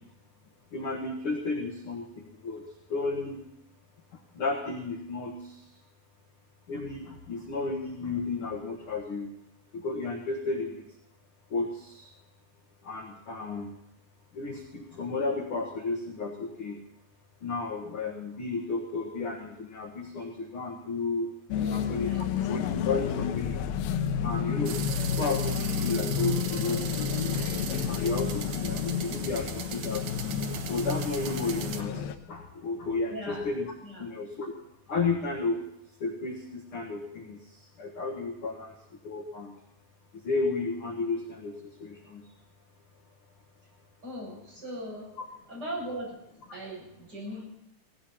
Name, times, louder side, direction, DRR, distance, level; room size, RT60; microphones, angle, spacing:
voice 1, 0.7-2.6 2.9-3.4 4.4-5.3 6.7-9.3 9.7-10.8 11.5-12.1 12.8-13.7 14.4-16.8 17.4-21.3 21.7-22.1 22.5-23.6 24.2-24.8 25.2-26.8 27.2-27.3 27.9-30.3 30.7-31.9 32.3-33.7 34.0-34.5 34.9-35.6 36.0-37.4 37.8-38.7 39.0-39.5 40.2-41.5 41.8-42.2, left 3 dB, 50° left, 1 dB, 1.8 m, -32 dB
sound 1, 21.5-32.2, left 8 dB, 80° left, 2.7 m, -30 dB
voice 2, 21.5-22.7 33.1-33.4 33.8-34.1 44.0-45.1 45.5-46.1 46.5-47.4, equal, 25° right, -4 dB, 8.5 m, -39 dB
sound 2, 24.7-31.8, right 8 dB, 70° right, 2.6 m, -39 dB
18.0 x 17.5 x 4.3 m, 0.79 s
omnidirectional pair, 4.2 m